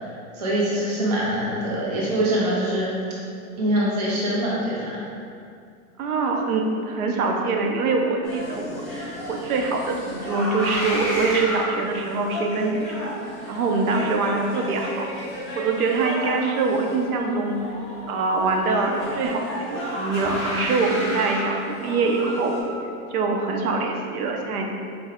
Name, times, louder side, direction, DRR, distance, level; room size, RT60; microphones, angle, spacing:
voice 1, 0.0-2.9 3.6-5.0, right 1 dB, 30° right, -6 dB, 0.4 m, -24 dB
voice 2, 6.0-15.1 15.6-17.7 18.1-22.6 23.1-24.7, right 3 dB, 85° right, 2 dB, 0.7 m, -24 dB
sound 1, 8.2-22.6, equal, ahead, 0.9 m, -33 dB
4.6 x 2.1 x 3.6 m, 2.4 s
supercardioid pair, 175°, 43 cm